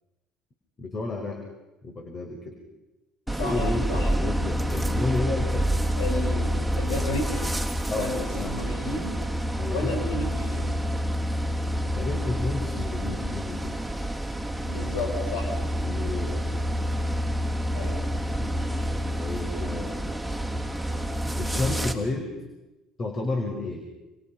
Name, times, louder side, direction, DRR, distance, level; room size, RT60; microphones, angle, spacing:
voice 1, 0.8-1.4 1.8-2.6 3.3-5.7 7.9-8.6 9.6-10.0 11.8-13.8 15.8-16.5 18.3-20.1 21.4-22.3 23.0-23.9, left 2 dB, 40° left, 3 dB, 5.1 m, -32 dB
voice 2, 3.3-3.6 3.9-4.1 6.0-6.5 6.8-7.5 7.9-9.2 9.7-10.8 14.6-15.5 17.7-18.0, left 2 dB, 90° left, 2 dB, 5.5 m, -32 dB
sound 1, 3.3-21.9, equal, 5° left, 3.5 m, -28 dB
29.5 x 28.0 x 5.9 m, 1.0 s
supercardioid pair, 80°, 0 cm